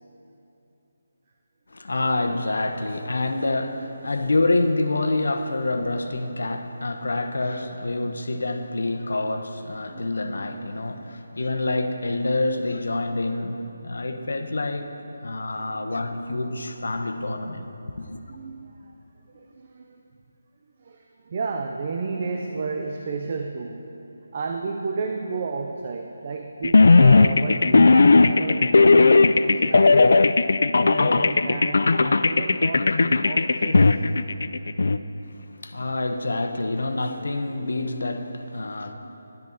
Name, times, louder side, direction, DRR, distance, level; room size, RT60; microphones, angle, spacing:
voice 1, 1.7-14.9 15.2-17.7 18.0-18.2 35.3-38.9, left 2 dB, 85° left, 7 dB, 1.0 m, -27 dB
voice 2, 15.5-16.1 16.6-16.8 18.1-18.9 19.3-20.0 20.8-23.9 24.3-30.2 30.8-33.9, right 4 dB, 25° right, 4 dB, 0.4 m, -33 dB
sound 1, 26.6-35.0, left 3 dB, 55° left, 0.4 m, -16 dB
13.5 x 11.5 x 4.0 m, 3.0 s
hypercardioid pair, 180°, 0 cm